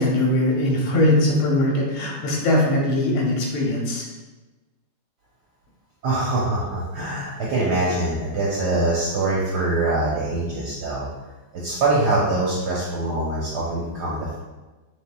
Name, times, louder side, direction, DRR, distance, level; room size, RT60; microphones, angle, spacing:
voice 1, 0.0-4.1, left 1 dB, 75° left, -2 dB, 1.8 m, -21 dB
voice 2, 6.0-11.1 11.6-14.4, right 2 dB, 65° right, -6 dB, 1.1 m, -23 dB
6.3 x 3.0 x 2.2 m, 1.2 s
omnidirectional pair, 2.3 m